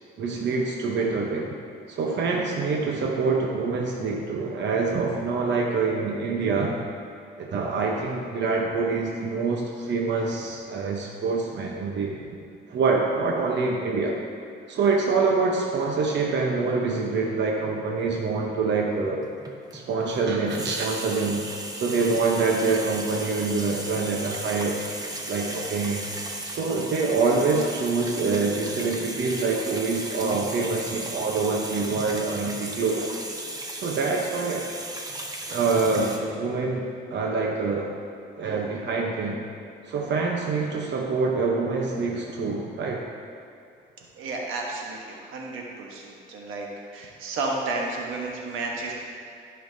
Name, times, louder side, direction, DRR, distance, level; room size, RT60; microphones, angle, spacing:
voice 1, 0.2-1.5 1.9-6.8 7.4-12.2 12.7-14.2 14.7-19.2 19.7-21.4 21.7-24.8 25.3-26.1 26.4-33.1 33.7-34.7 35.5-37.9 38.4-39.4 39.9-43.0, right 4 dB, 65° right, -1 dB, 1.0 m, -25 dB
sound 1, 19.2-20.0 20.3-36.2, right 2 dB, 20° right, 1.0 m, -36 dB
voice 2, 44.1-46.7 46.9-48.9, right 3 dB, 90° right, -1 dB, 1.3 m, -32 dB
13.5 x 5.7 x 2.8 m, 2.4 s
cardioid pair, 90°, 20 cm